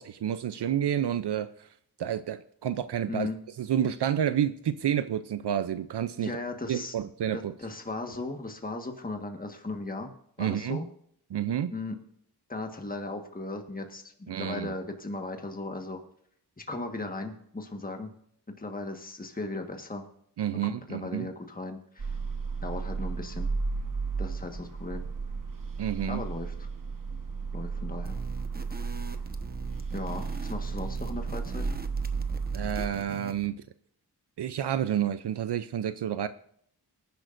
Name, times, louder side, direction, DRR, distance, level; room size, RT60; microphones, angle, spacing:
voice 1, 0.0-1.7 2.0-3.3 3.6-6.3 6.7-7.5 10.4-10.8 11.3-11.7 14.3-14.7 20.4-21.3 25.8-26.2 32.5-33.6 34.4-36.3, right 10 dB, 75° right, 12 dB, 0.6 m, -29 dB
voice 2, 6.2-6.9 7.3-10.1 10.4-10.9 11.7-12.0 12.5-16.0 16.6-18.1 18.5-20.1 20.6-22.2 22.6-23.5 24.2-25.1 26.1-26.7 27.5-28.2 28.7-29.0 29.9-31.8, left 2 dB, 20° left, 4 dB, 1.5 m, -37 dB
sound 1, 22.0-32.9, right 4 dB, 50° right, 1.4 m, -33 dB
sound 2, 28.0-33.5, right 3 dB, 20° right, 1.1 m, -43 dB
20.0 x 10.5 x 2.6 m, 0.67 s
wide cardioid pair, 70°, 41 cm